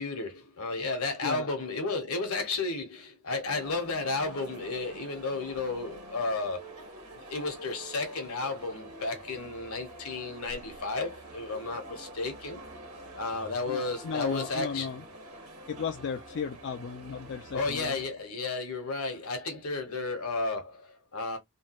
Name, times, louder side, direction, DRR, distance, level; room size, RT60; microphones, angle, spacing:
voice 1, 0.0-6.7 7.1-12.6 13.2-14.9 17.5-21.4, left 3 dB, 75° left, 1.1 m, -33 dB
sound 1, 3.4-18.1, right 1 dB, 75° right, 1.4 m, -47 dB
voice 2, 13.7-15.0 15.7-18.0, left 6 dB, 55° left, 0.4 m, -35 dB
3.1 x 2.3 x 2.9 m
head